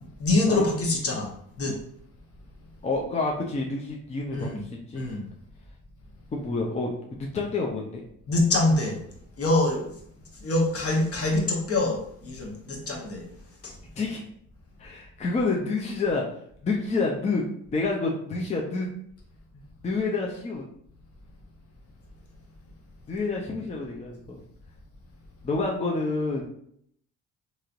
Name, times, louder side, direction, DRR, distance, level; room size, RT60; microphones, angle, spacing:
voice 1, 0.2-1.3 1.6-1.7 4.3-4.6 4.9-5.2 8.3-9.0 9.4-9.9 10.4-13.2 13.6-13.7, left 2 dB, 50° left, 0 dB, 1.0 m, -25 dB
voice 2, 2.8-5.1 6.3-8.0 14.0-14.2 14.8-16.2 16.6-17.4 17.7-18.9 19.5-20.6 23.1-24.4 25.4-26.5, left 3 dB, 25° left, -1 dB, 0.5 m, -28 dB
3.0 x 2.8 x 2.5 m, 0.67 s
cardioid pair, 90°, 30 cm